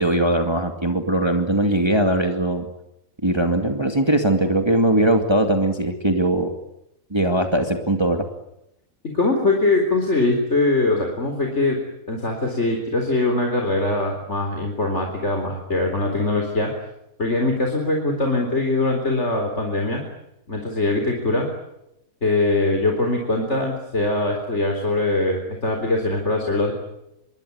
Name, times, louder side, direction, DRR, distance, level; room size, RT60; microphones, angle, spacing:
voice 1, 0.0-2.7 3.2-6.5 7.1-8.3, right 1 dB, 20° right, 5 dB, 2.3 m, -20 dB
voice 2, 9.1-11.8 12.1-16.7 17.2-20.0 20.5-21.5 22.2-26.7, left 2 dB, 55° left, 3 dB, 4.4 m, -22 dB
26.5 x 22.0 x 9.6 m, 0.84 s
omnidirectional pair, 1.4 m